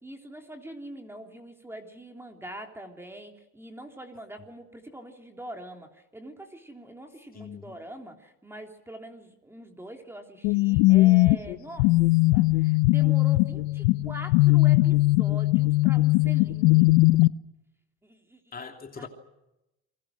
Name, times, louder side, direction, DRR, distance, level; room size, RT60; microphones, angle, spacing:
voice 1, 0.0-11.9 12.3-17.1 18.0-18.4 19.0-19.1, right 1 dB, 5° right, 3 dB, 3.2 m, -43 dB
voice 2, 7.3-7.7 18.5-19.1, left 5 dB, 25° left, 4 dB, 3.2 m, -41 dB
sound 1, 10.4-17.3, left 21 dB, 85° left, 0.9 m, -20 dB
29.5 x 23.5 x 6.3 m, 0.91 s
cardioid pair, 120°, 34 cm